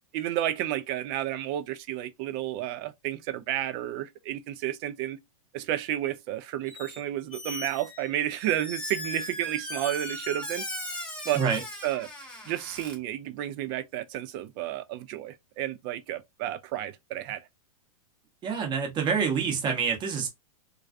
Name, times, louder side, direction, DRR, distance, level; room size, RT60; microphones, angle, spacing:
voice 1, 0.1-5.2 5.5-10.6 11.2-11.4 11.8-12.1 12.5-17.4, right 12 dB, 40° right, 0.4 m, -31 dB
Squeak, 6.7-7.0 7.3-13.0, left 1 dB, 5° left, 0.7 m, -38 dB
voice 2, 18.4-20.3, right 6 dB, 25° right, 0.8 m, -27 dB
2.3 x 2.2 x 2.4 m
hypercardioid pair, 125°, 18 cm